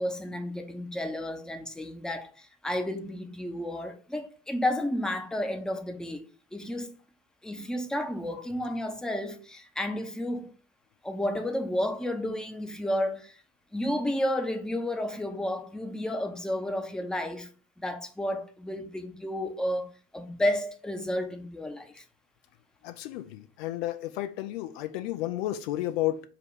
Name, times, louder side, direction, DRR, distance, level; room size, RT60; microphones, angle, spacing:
voice 1, 0.0-7.0 7.4-10.5 11.0-13.4 13.7-17.5 17.8-22.0, left 1 dB, ahead, 0.6 m, -32 dB
voice 2, 22.8-26.2, left 14 dB, 65° left, 0.5 m, -32 dB
4.9 x 2.2 x 4.6 m
figure-of-eight pair, 50°, 33 cm